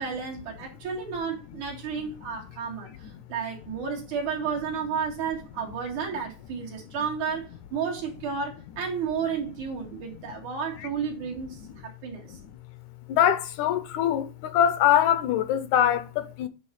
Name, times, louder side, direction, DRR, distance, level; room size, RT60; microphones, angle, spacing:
voice 1, 0.0-12.3, right 6 dB, 75° right, 3.4 m, -32 dB
voice 2, 13.1-16.5, left 10 dB, 75° left, 2.0 m, -23 dB
9.1 x 3.2 x 6.3 m
omnidirectional pair, 3.5 m